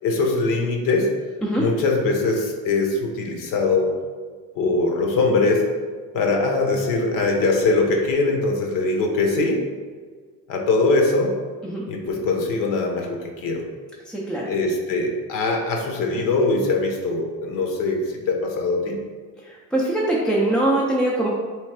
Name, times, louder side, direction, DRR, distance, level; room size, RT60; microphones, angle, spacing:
voice 1, 0.0-1.1 1.6-3.9 4.5-5.7 6.1-9.6 10.5-11.3 11.9-13.6 14.4-19.0, left 3 dB, 70° left, 1 dB, 0.9 m, -22 dB
voice 2, 14.1-14.5 19.4-21.3, right 1 dB, ahead, -5 dB, 0.3 m, -22 dB
3.3 x 3.1 x 4.6 m, 1.6 s
cardioid pair, 165°, 34 cm